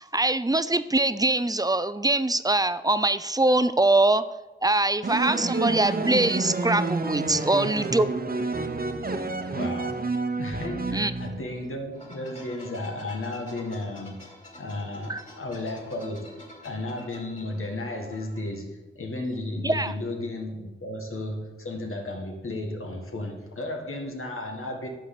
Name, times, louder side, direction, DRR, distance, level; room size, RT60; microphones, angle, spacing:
voice 1, 0.0-4.2 4.6-8.1 10.9-11.1 15.1-15.2 19.6-19.9, right 2 dB, 20° right, 13 dB, 0.5 m, -23 dB
sound 1, 5.0-11.7, right 3 dB, 45° right, 0.9 m, -29 dB
voice 2, 9.5-10.0 10.4-14.3 14.6-24.9, left 2 dB, 85° left, 2 dB, 1.7 m, -34 dB
sound 2, 11.9-18.5, left 1 dB, 35° left, 3.4 m, -48 dB
10.5 x 4.7 x 7.7 m, 1.2 s
wide cardioid pair, 60°, 21 cm